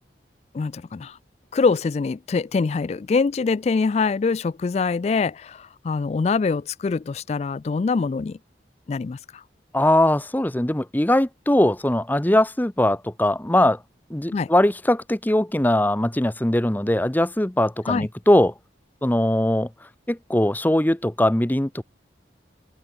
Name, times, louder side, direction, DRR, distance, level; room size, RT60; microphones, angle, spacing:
voice 1, 0.5-1.2 1.5-8.4 8.9-9.4 14.3-14.5 17.9-18.1, left 4 dB, 35° left, 0.3 m, -24 dB
voice 2, 9.7-13.8 14.1-18.5 19.0-19.7 20.1-21.8, left 1 dB, 10° left, 0.8 m, -20 dB
head